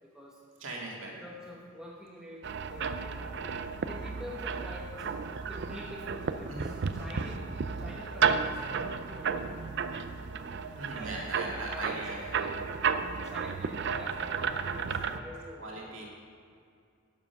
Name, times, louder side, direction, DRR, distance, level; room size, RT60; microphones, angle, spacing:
voice 1, 0.0-0.4 1.1-3.3 3.9-5.2 5.4-7.5 7.8-9.9 10.9-15.8, equal, 5° right, -4 dB, 1.1 m, -47 dB
voice 2, 0.6-1.2 6.5-6.7 10.7-12.3 12.5-12.6 15.6-16.1, right 2 dB, 75° right, -3 dB, 2.2 m, -39 dB
sound 1, 2.4-15.2, right 6 dB, 60° right, 0.5 m, -33 dB
12.0 x 7.4 x 5.8 m, 2.3 s
head